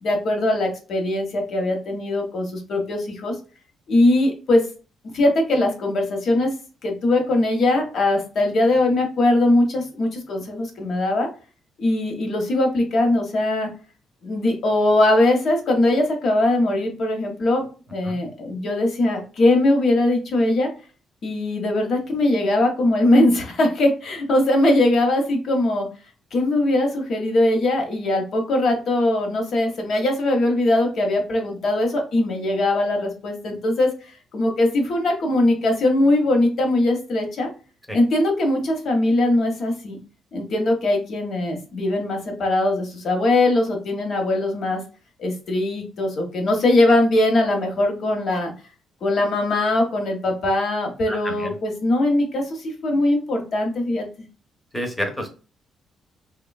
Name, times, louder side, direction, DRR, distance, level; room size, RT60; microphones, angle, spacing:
voice 1, 0.0-3.3 3.9-4.6 5.1-6.5 6.8-11.3 11.8-13.7 14.2-17.6 17.9-20.7 21.2-25.9 26.3-37.5 37.9-40.0 40.3-44.8 45.2-48.5 49.0-54.1, left 1 dB, 60° left, 2 dB, 0.8 m, -21 dB
voice 2, 51.1-51.5 54.7-55.3, equal, 5° left, 5 dB, 0.7 m, -29 dB
3.1 x 2.2 x 2.2 m, 0.35 s
cardioid pair, 90°, 0 cm